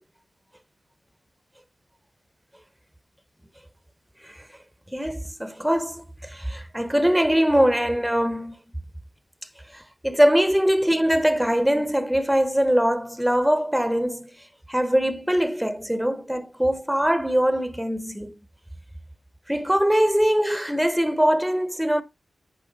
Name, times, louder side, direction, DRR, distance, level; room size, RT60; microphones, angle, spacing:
voice 1, 4.9-8.6 9.7-14.3 14.7-18.3 19.5-22.0, equal, 5° right, 1.0 m, -22 dB
10.0 x 5.0 x 4.0 m
cardioid pair, 65°, 0 cm